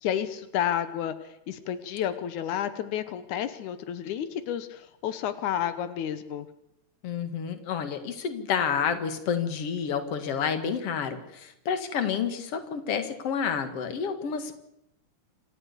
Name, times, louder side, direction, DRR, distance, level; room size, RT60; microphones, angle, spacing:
voice 1, 0.0-6.5, left 10 dB, 85° left, 12 dB, 2.5 m, -31 dB
voice 2, 7.0-14.6, left 7 dB, 55° left, 9 dB, 2.7 m, -29 dB
27.5 x 14.0 x 8.3 m, 0.83 s
omnidirectional pair, 3.3 m